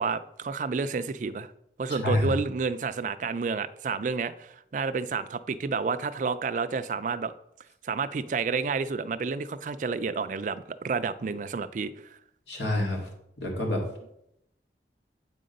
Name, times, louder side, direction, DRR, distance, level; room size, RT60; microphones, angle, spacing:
voice 1, 0.0-1.5 1.8-7.3 7.8-11.9, right 4 dB, 45° right, 0.3 m, -30 dB
voice 2, 1.9-2.3 12.5-13.1 13.4-13.8, left 1 dB, 85° left, 2.0 m, -27 dB
8.5 x 3.8 x 5.3 m
head